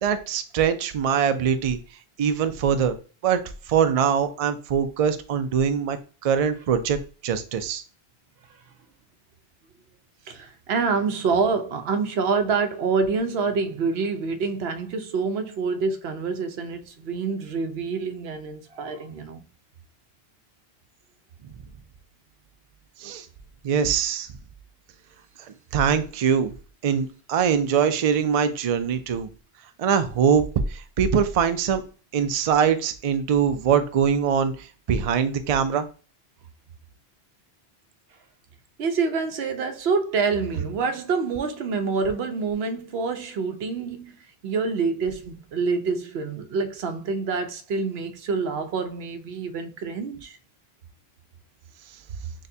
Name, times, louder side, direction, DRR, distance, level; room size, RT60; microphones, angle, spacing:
voice 1, 0.0-1.8 2.2-3.0 3.2-3.4 3.7-6.0 6.2-7.0 7.2-7.8 23.0-23.3 23.6-24.3 25.7-26.5 26.8-29.3 29.8-30.4 30.7-31.8 32.1-35.9, right 7 dB, 60° right, 0.4 m, -22 dB
voice 2, 10.3-19.4 38.8-44.2 44.4-50.4, right 4 dB, 75° right, 0.9 m, -26 dB
6.4 x 2.2 x 2.7 m
omnidirectional pair, 1.1 m